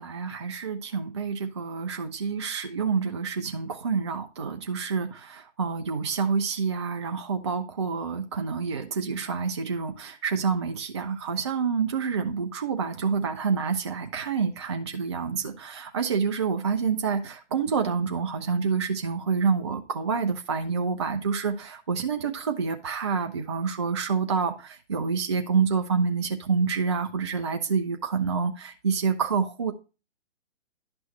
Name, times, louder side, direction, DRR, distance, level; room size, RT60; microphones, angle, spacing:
voice 1, 0.0-29.7, right 5 dB, 25° right, 0.4 m, -28 dB
10.5 x 6.1 x 3.1 m
figure-of-eight pair, 130°, 36 cm